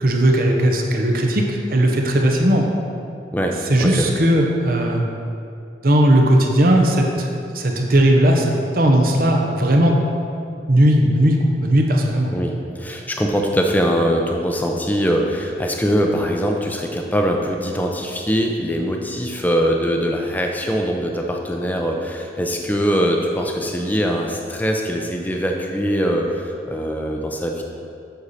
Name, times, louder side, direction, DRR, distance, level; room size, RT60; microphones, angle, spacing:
voice 1, 0.0-2.7 3.7-5.0 5.8-7.3 7.5-8.4 8.7-9.9 10.7-12.3, right 1 dB, 50° right, 1 dB, 0.9 m, -17 dB
voice 2, 3.3-4.1 12.3-27.6, equal, 10° left, 1 dB, 0.6 m, -22 dB
8.0 x 6.5 x 4.2 m, 2.5 s
head